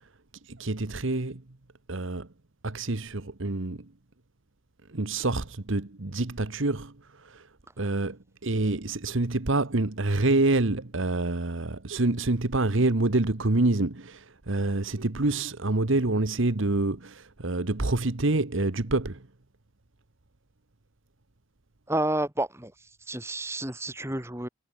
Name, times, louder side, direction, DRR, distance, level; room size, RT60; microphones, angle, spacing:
voice 1, 0.4-1.4 1.9-2.3 2.6-3.9 4.9-7.5 7.8-19.2, right 2 dB, 65° right, 1.3 m, -27 dB
voice 2, 21.9-22.7 23.1-24.5, right 1 dB, 10° right, 2.5 m, -30 dB
head